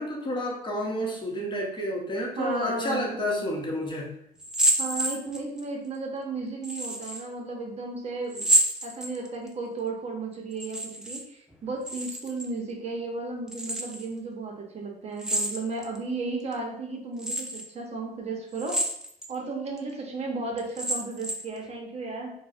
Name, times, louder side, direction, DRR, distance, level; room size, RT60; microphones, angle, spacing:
voice 1, 0.0-4.1, equal, 25° left, -2 dB, 0.9 m, -30 dB
voice 2, 2.4-3.2 4.8-8.5 8.8-18.8 19.3-22.3, right 3 dB, 40° right, 1 dB, 0.7 m, -34 dB
sound 1, 4.4-5.6 6.6-7.2 8.3-9.5 10.5-11.2 11.5-12.5 13.5-14.1 15.2-16.0 16.5-16.6 17.2-17.7 18.5-19.3 19.8-19.9 20.6-21.6, right 1 dB, 5° right, 0.4 m, -28 dB
4.4 x 2.1 x 2.5 m, 0.72 s
cardioid pair, 110°, 17 cm